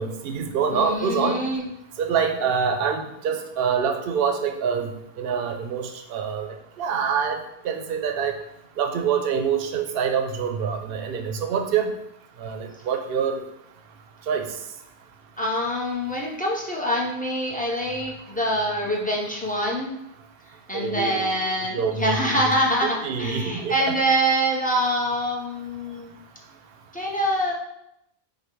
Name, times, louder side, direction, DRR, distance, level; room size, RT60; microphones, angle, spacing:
voice 1, 0.0-1.4 2.0-4.9 5.2-7.4 7.6-8.3 8.8-11.9 12.4-13.4 14.3-14.4 20.7-21.3 21.7-22.4 22.8-23.8, right 6 dB, 70° right, 5 dB, 0.8 m, -25 dB
voice 2, 0.7-1.7 15.4-20.0 20.7-26.1 26.9-27.5, equal, 10° left, -3 dB, 0.7 m, -25 dB
5.1 x 2.3 x 4.4 m, 0.81 s
omnidirectional pair, 1.1 m